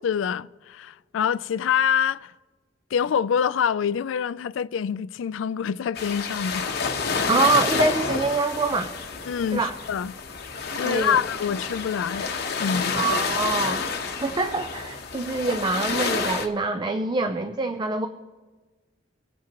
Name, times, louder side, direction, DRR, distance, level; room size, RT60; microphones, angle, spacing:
voice 1, 0.0-2.3 2.9-6.7 9.3-10.1 10.8-12.3 12.6-13.0, left 7 dB, 85° left, 0.3 m, -26 dB
sound 1, 5.9-16.5, left 5 dB, 55° left, 1.0 m, -29 dB
voice 2, 7.3-8.9 9.5-9.7 10.8-11.2 12.9-18.1, right 3 dB, 25° right, 0.5 m, -25 dB
24.5 x 8.5 x 2.9 m
head